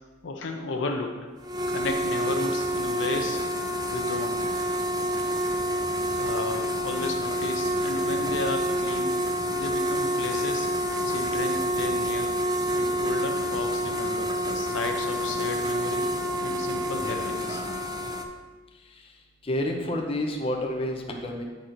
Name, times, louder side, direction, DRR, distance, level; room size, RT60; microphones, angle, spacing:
voice 1, 0.2-1.3 1.7-3.4 3.9-4.5 6.2-9.2 9.5-10.7 11.1-12.3 12.7-16.1 16.4-17.6, left 3 dB, 65° left, 3 dB, 0.6 m, -33 dB
sound 1, 1.4-18.2, equal, 20° right, 0.4 m, -28 dB
voice 2, 19.4-21.4, left 1 dB, 30° left, 1 dB, 0.7 m, -29 dB
8.1 x 4.4 x 3.8 m, 1.4 s
head